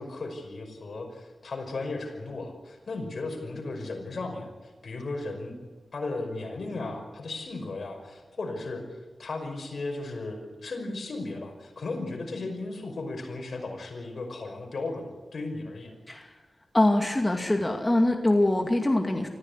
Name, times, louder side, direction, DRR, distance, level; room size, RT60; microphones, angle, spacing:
voice 1, 0.0-5.5 5.9-8.8 9.2-15.9, left 2 dB, 70° left, 3 dB, 5.6 m, -35 dB
voice 2, 16.7-19.3, left 1 dB, 20° left, 3 dB, 2.4 m, -23 dB
25.0 x 15.0 x 8.2 m, 1.4 s
wide cardioid pair, 70°, 0 cm